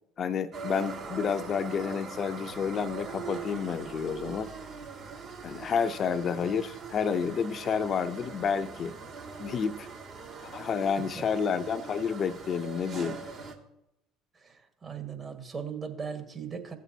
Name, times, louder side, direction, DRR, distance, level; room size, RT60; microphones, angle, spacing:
voice 1, 0.2-4.5 5.4-8.9 9.4-9.9 10.4-13.2, left 6 dB, 45° left, 8 dB, 0.6 m, -30 dB
sound 1, 0.5-13.5, right 5 dB, 55° right, 1.8 m, -42 dB
voice 2, 14.3-16.8, right 6 dB, 35° right, 6 dB, 1.7 m, -38 dB
15.5 x 7.3 x 2.8 m, 0.83 s
hypercardioid pair, 65°, 0 cm